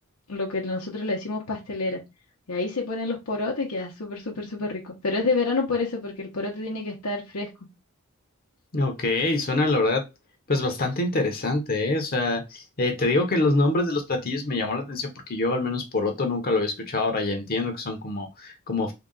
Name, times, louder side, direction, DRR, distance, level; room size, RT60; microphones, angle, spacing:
voice 1, 0.3-2.0 2.5-7.5, left 3 dB, 85° left, 0.8 m, -28 dB
voice 2, 8.7-10.0 10.5-18.9, left 2 dB, 40° left, 0.8 m, -25 dB
3.7 x 2.3 x 3.7 m
head